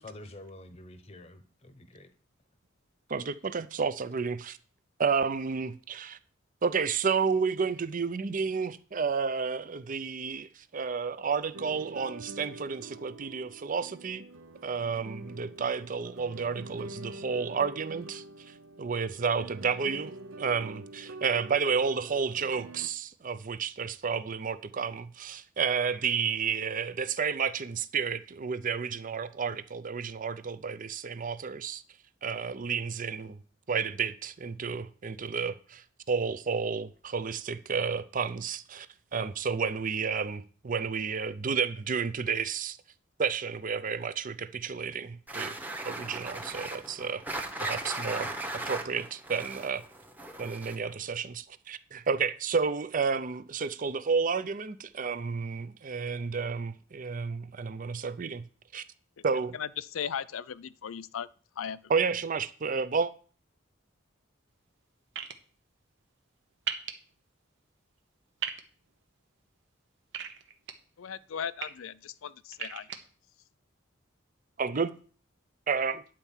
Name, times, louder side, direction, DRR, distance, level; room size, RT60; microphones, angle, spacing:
voice 1, 0.0-2.1, left 2 dB, 30° left, 0.8 m, -48 dB
voice 2, 3.1-4.6 5.0-6.2 6.6-14.2 14.6-20.1 20.4-31.8 32.2-33.4 33.7-38.9 39.1-42.8 43.2-45.6 45.9-47.2 47.6-49.8 50.4-58.5 58.7-58.8 59.2-59.6 61.9-63.1 74.6-74.9 75.7-76.0, right 5 dB, 40° right, 0.5 m, -31 dB
sound 1, 11.5-22.9, right 2 dB, 80° right, 0.7 m, -46 dB
sound 2, 45.3-50.9, right 1 dB, 10° right, 1.0 m, -37 dB
voice 3, 59.5-61.3 61.6-61.8 71.0-72.9, left 8 dB, 90° left, 0.5 m, -37 dB
sound 3, 65.1-65.3 66.7-66.9 68.4-68.6 70.1-70.7 71.4-71.7 72.5-73.0, right 8 dB, 65° right, 1.0 m, -34 dB
10.0 x 4.5 x 7.3 m
head